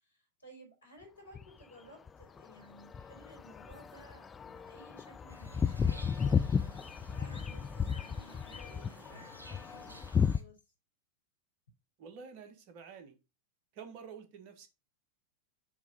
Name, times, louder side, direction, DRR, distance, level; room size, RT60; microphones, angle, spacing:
voice 1, 0.0-10.7, right 1 dB, 80° left, 1 dB, 3.4 m, -57 dB
sound 1, 1.3-1.6 2.1-10.4, left 6 dB, 20° left, 0.4 m, -34 dB
sound 2, 5.3-10.4, right 1 dB, 80° right, 1.1 m, -54 dB
voice 2, 12.0-13.2 13.7-14.7, right 6 dB, 45° right, 8 dB, 1.3 m, -49 dB
7.1 x 3.5 x 5.1 m, 0.27 s
figure-of-eight pair, 90°, 0 cm